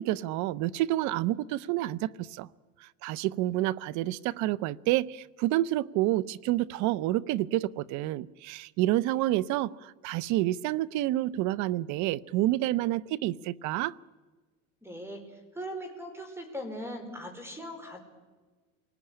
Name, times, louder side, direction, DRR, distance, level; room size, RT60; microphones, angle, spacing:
voice 1, 0.0-2.5 2.8-14.0, right 15 dB, 65° right, 20 dB, 0.8 m, -29 dB
voice 2, 14.8-15.3 15.5-18.0, equal, 10° right, 7 dB, 4.7 m, -39 dB
27.5 x 19.0 x 10.0 m, 1.3 s
cardioid pair, 130°, 32 cm